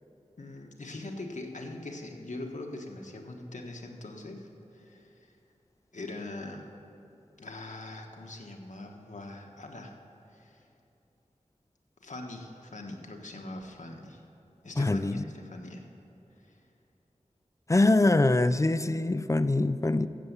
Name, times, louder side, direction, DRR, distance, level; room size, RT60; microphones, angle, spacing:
voice 1, 0.4-5.3 5.9-6.7 7.4-10.0 10.3-10.7 12.0-14.2 14.6-15.9 16.4-16.6, left 2 dB, 80° left, 2 dB, 1.4 m, -42 dB
voice 2, 14.8-15.2 17.7-20.1, left 2 dB, 25° left, 13 dB, 0.4 m, -24 dB
13.5 x 8.1 x 8.2 m, 2.9 s
wide cardioid pair, 70°, 13 cm